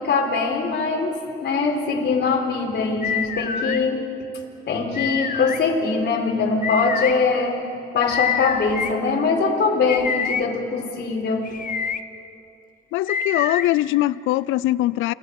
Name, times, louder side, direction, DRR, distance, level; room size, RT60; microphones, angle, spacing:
voice 1, 0.0-4.1 4.7-7.6 7.9-11.5, left 4 dB, 60° left, 4.0 m, -22 dB
sound 1, 3.0-3.8 4.9-5.6 6.6-7.1 8.1-8.9 9.9-10.4 11.5-12.0 13.1-13.7, left 7 dB, 45° left, 1.0 m, -26 dB
voice 2, 12.9-15.1, left 16 dB, 90° left, 0.4 m, -21 dB
29.5 x 19.0 x 5.3 m
cardioid pair, 90°, 20 cm